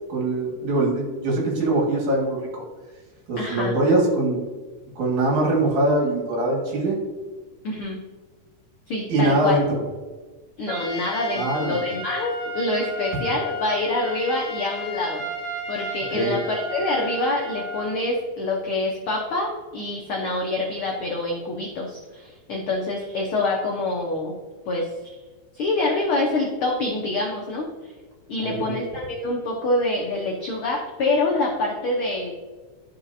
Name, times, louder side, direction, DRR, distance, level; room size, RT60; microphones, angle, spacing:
voice 1, 0.1-2.6 3.3-4.4 5.0-7.0 9.1-9.7 11.3-11.8 16.1-16.3 28.4-28.8, right 2 dB, 70° right, -3 dB, 3.2 m, -22 dB
voice 2, 3.4-3.8 7.6-8.0 8.9-9.6 10.6-15.2 15.7-24.4 24.7-24.9 25.5-27.9 28.3-32.3, left 2 dB, 75° left, -1 dB, 1.2 m, -26 dB
Trumpet, 10.7-18.0, left 1 dB, 85° right, 0.8 m, -33 dB
12.0 x 4.9 x 2.7 m, 1.3 s
omnidirectional pair, 3.5 m